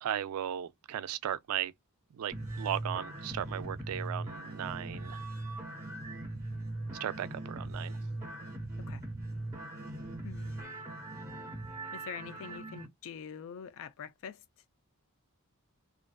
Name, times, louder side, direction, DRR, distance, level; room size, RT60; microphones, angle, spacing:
voice 1, 0.0-1.7 2.1-5.2 7.0-8.0, right 10 dB, 75° right, 0.3 m, -36 dB
sound 1, 2.3-12.9, right 2 dB, 15° right, 1.0 m, -40 dB
voice 2, 10.2-10.8 11.9-14.4, left 7 dB, 65° left, 0.4 m, -45 dB
2.4 x 2.3 x 2.2 m
head